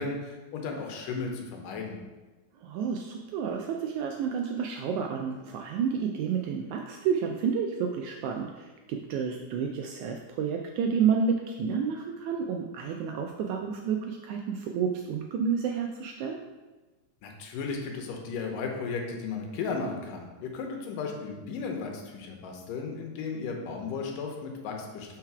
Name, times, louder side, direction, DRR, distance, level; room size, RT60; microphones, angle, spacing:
voice 1, 0.0-2.0 17.2-25.2, left 4 dB, 80° left, 2 dB, 2.4 m, -35 dB
voice 2, 2.6-16.4, right 6 dB, 80° right, 2 dB, 1.7 m, -30 dB
4.7 x 4.5 x 5.8 m, 1.2 s
omnidirectional pair, 3.8 m